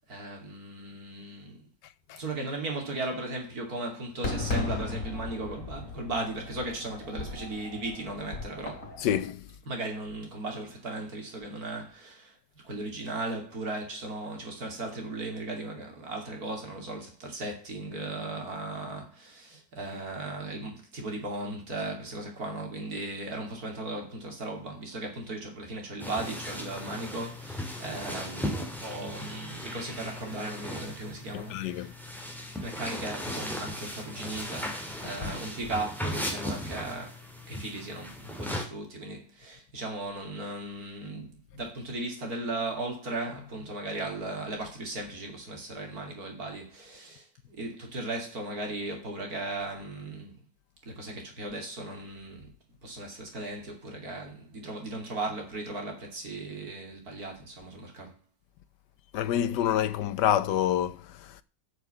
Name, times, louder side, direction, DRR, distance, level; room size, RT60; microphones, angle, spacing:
voice 1, 0.1-1.7 2.2-8.9 9.7-31.9 32.6-50.4 50.8-52.5 52.8-58.2, right 2 dB, 60° right, 3.2 m, -37 dB
Fireworks, 4.2-9.3, left 3 dB, 55° left, 3.6 m, -36 dB
voice 2, 9.0-9.5 31.3-31.9 59.1-61.4, left 10 dB, 80° left, 1.4 m, -27 dB
sound 1, 26.0-38.6, equal, ahead, 2.3 m, -37 dB
7.8 x 6.8 x 6.9 m
omnidirectional pair, 1.8 m